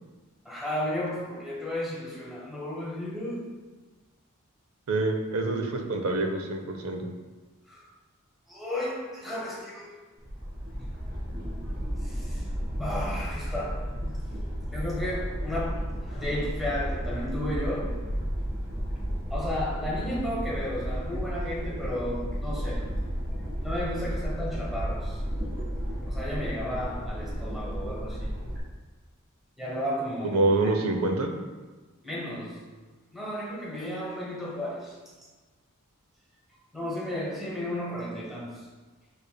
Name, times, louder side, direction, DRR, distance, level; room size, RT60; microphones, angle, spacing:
voice 1, 0.4-3.5 7.7-7.9 8.5-10.0 12.0-12.5 12.8-14.1 14.7-18.0 19.3-22.9 23.6-25.2 26.1-28.3 29.6-30.4 32.0-32.6 33.1-34.9 36.7-38.6, left 1 dB, ahead, -7 dB, 1.1 m, -33 dB
voice 2, 4.9-7.1 30.2-31.3, right 2 dB, 80° right, 4 dB, 0.6 m, -26 dB
sound 1, 10.2-28.6, equal, 45° right, 1.4 m, -33 dB
6.6 x 3.3 x 2.2 m, 1.3 s
head